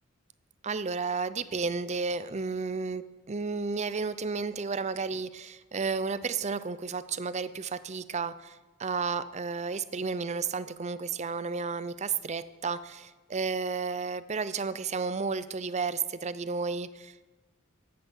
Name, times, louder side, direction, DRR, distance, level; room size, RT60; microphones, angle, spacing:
voice 1, 0.6-17.2, right 4 dB, 35° right, 14 dB, 0.5 m, -32 dB
14.5 x 10.0 x 6.3 m, 1.2 s
head